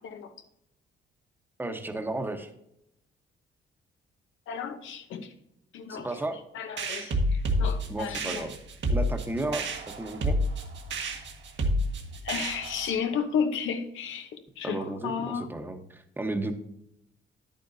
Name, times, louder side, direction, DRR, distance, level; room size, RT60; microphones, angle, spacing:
voice 1, 0.0-0.3 4.5-5.3 5.7-6.1 6.5-8.5 12.2-15.5, left 7 dB, 80° left, 8 dB, 1.0 m, -33 dB
voice 2, 1.6-2.5 5.9-6.4 7.9-8.6 8.9-9.7 10.0-10.4 14.6-16.5, right 2 dB, 10° right, 6 dB, 1.1 m, -33 dB
sound 1, 6.8-13.0, equal, 65° right, 1.6 m, -29 dB
10.0 x 9.0 x 2.7 m, 0.79 s
cardioid pair, 90°, 20 cm